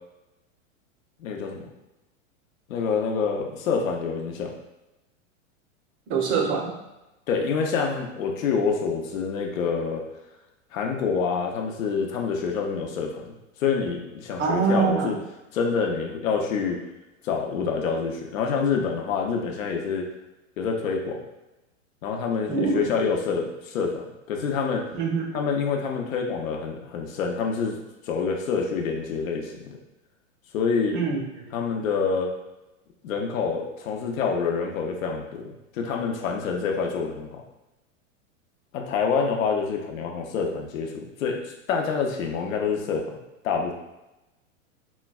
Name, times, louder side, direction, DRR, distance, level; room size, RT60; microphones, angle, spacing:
voice 1, 1.2-1.7 2.7-4.5 7.3-10.0 10.7-13.3 13.6-15.2 15.5-16.8 17.2-20.1 20.6-21.2 22.0-24.0 24.3-24.8 25.3-27.8 28.1-29.8 30.5-31.0 31.5-32.3 33.0-37.4 38.7-41.4 41.7-43.1 43.4-43.7, left 5 dB, 75° left, 1 dB, 0.7 m, -27 dB
voice 2, 6.1-6.7 14.4-15.2 22.5-22.9 24.9-25.3 30.9-31.5, right 5 dB, 30° right, 1 dB, 0.6 m, -25 dB
3.8 x 2.2 x 2.3 m, 0.96 s
hypercardioid pair, 120°, 40 cm